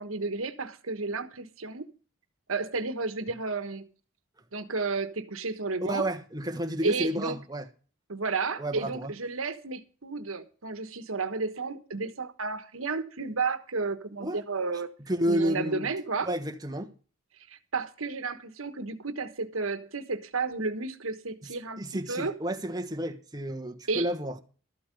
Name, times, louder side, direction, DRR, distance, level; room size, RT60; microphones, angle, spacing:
voice 1, 0.0-1.9 2.5-3.9 4.5-6.1 6.8-7.4 8.1-14.9 15.3-16.3 17.5-22.3 23.9-24.1, right 4 dB, 85° right, 1.3 m, -32 dB
voice 2, 5.8-7.7 8.6-9.1 14.2-14.4 15.1-15.9 16.2-16.9 21.4-21.5 21.8-24.4, right 1 dB, 20° right, 1.3 m, -31 dB
13.5 x 8.4 x 5.2 m
head